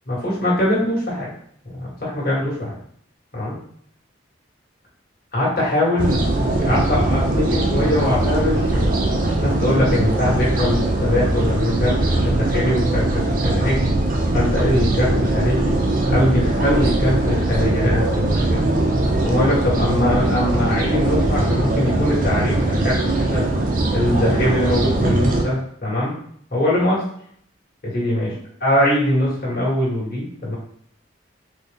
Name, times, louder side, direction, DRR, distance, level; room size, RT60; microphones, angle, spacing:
voice 1, 0.1-1.3 1.7-2.8 3.3-3.6 5.3-6.2 6.6-8.9 9.4-13.9 14.3-15.8 16.1-18.6 19.2-23.5 23.9-26.1 26.5-27.1 27.8-28.3 28.6-30.6, left 1 dB, 50° left, -7 dB, 1.4 m, -22 dB
sound 1, 6.0-25.4, right 2 dB, 45° right, 0.5 m, -20 dB
4.1 x 2.1 x 3.4 m, 0.63 s
head